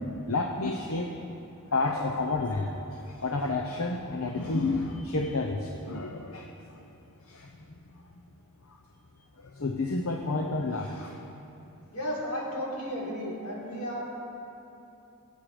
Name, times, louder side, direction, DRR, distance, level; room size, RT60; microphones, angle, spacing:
voice 1, 0.3-1.1 1.7-6.9 7.3-7.5 8.7-8.8 9.4-11.2, left 3 dB, 65° left, 2 dB, 0.8 m, -30 dB
voice 2, 11.9-14.1, equal, 85° left, -5 dB, 3.9 m, -33 dB
23.0 x 8.4 x 5.0 m, 2.9 s
head